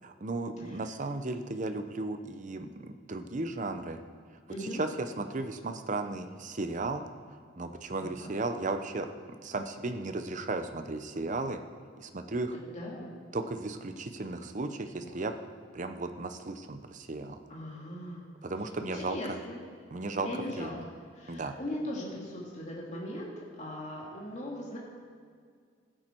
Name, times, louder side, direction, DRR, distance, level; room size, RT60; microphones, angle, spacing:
voice 1, 0.0-4.0 4.8-7.0 7.6-9.1 9.4-11.6 12.0-12.5 13.3-15.3 15.7-17.4 18.4-19.2 19.9-20.3 20.6-20.7 21.3-21.5, right 2 dB, 40° right, 7 dB, 0.7 m, -35 dB
voice 2, 4.5-4.8 8.0-8.3 12.6-13.1 15.0-15.2 17.5-18.2 18.8-19.6 20.2-20.7 21.1-24.8, left 1 dB, 35° left, -4 dB, 2.4 m, -39 dB
15.5 x 8.8 x 4.5 m, 2.1 s
head